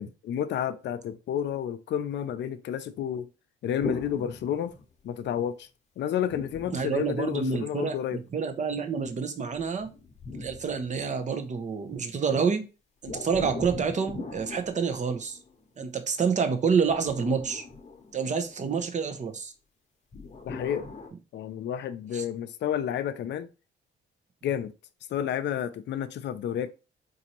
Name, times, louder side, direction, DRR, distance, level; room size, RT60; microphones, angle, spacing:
voice 1, 0.0-3.3 3.6-4.7 5.0-5.7 6.0-8.2 20.5-20.9 21.3-23.5 24.4-24.7 25.1-26.7, left 9 dB, 60° left, 0.5 m, -30 dB
sound 1, 3.8-5.2 6.2-7.8 9.5-11.5 13.0-15.6 16.7-18.6 20.1-21.1, left 3 dB, 35° left, 0.9 m, -40 dB
voice 2, 6.7-9.9 10.3-12.6 13.0-15.4 15.8-17.6 18.1-19.5 22.1-22.2, right 6 dB, 35° right, 0.7 m, -28 dB
4.1 x 2.6 x 2.9 m
cardioid pair, 90°, 20 cm